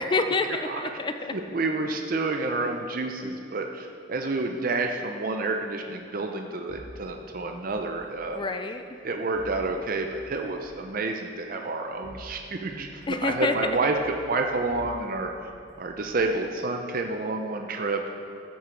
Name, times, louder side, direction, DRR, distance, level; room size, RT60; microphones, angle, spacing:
voice 1, 0.0-1.3 8.3-8.8 13.1-13.5, left 3 dB, 25° left, 8 dB, 0.4 m, -27 dB
voice 2, 1.3-8.5 9.0-15.3 15.8-18.0, right 3 dB, 45° right, 3 dB, 0.6 m, -29 dB
sound 1, 6.7-8.2 9.3-10.7 11.8-12.7 13.0-15.4 15.7-16.3, equal, 60° left, 2.2 m, -48 dB
13.0 x 6.4 x 4.6 m, 2.5 s
head